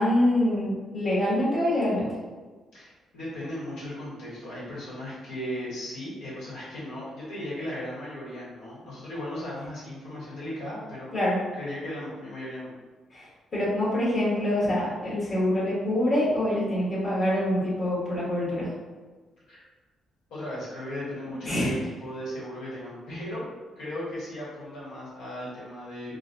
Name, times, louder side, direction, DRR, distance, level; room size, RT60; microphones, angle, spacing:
voice 1, 0.0-2.1 11.1-11.4 13.1-18.7 21.4-21.7, left 1 dB, 45° left, -11 dB, 1.4 m, -25 dB
voice 2, 2.7-11.1 11.6-12.7 19.5-19.6 20.3-23.5 23.8-26.2, left 1 dB, 85° left, -9 dB, 1.4 m, -36 dB
3.8 x 2.2 x 2.6 m, 1.3 s
cardioid pair, 90°, 0 cm